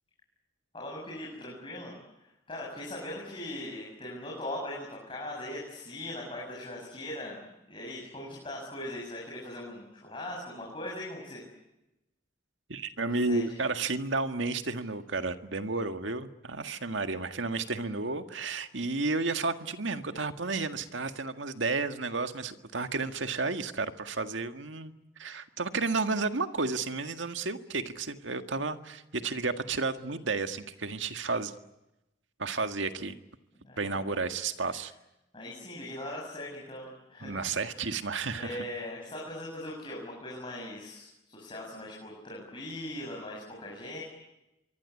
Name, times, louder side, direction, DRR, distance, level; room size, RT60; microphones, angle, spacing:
voice 1, 0.7-1.9 2.5-11.4 13.0-13.4 33.5-34.2 34.7-34.8 35.3-37.4 37.7-37.8 38.3-44.0, left 1 dB, 25° left, -3 dB, 7.3 m, -40 dB
voice 2, 12.7-31.5 32.4-33.1 33.8-34.9 37.2-38.6, right 3 dB, 80° right, 8 dB, 1.8 m, -32 dB
26.0 x 24.0 x 8.5 m, 0.92 s
head